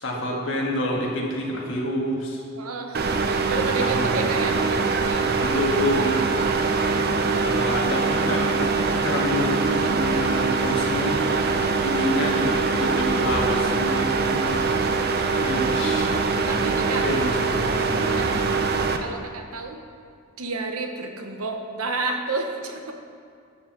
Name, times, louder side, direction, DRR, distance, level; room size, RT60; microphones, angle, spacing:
voice 1, 0.0-2.4 3.8-4.2 5.3-6.2 7.4-11.4 11.8-14.7 15.3-16.2 16.9-18.5, left 1 dB, 60° left, -2 dB, 1.7 m, -28 dB
voice 2, 2.5-5.3 5.8-6.5 6.9-7.1 16.5-17.0 18.1-19.8 20.4-22.9, right 3 dB, 85° right, 4 dB, 1.0 m, -31 dB
sound 1, 2.9-19.0, right 4 dB, 45° right, 0.6 m, -23 dB
13.0 x 4.7 x 6.0 m, 2.3 s
head